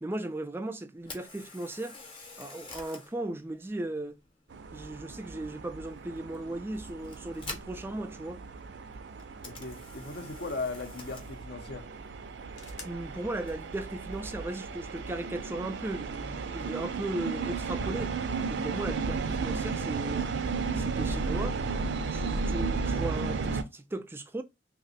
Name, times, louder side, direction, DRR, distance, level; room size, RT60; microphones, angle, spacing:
voice 1, 0.0-2.0 2.4-4.2 4.7-8.4 12.8-18.2 18.5-20.3 20.7-21.6 22.1-24.4, right 2 dB, 15° right, 0.3 m, -37 dB
Camera, 1.0-15.0, left 3 dB, 30° left, 0.8 m, -50 dB
sound 1, 4.5-23.6, right 4 dB, 75° right, 0.5 m, -34 dB
voice 2, 9.4-11.9, left 3 dB, 65° left, 0.7 m, -38 dB
sound 2, 12.5-17.6, left 3 dB, 85° left, 1.0 m, -55 dB
2.8 x 2.2 x 4.1 m
head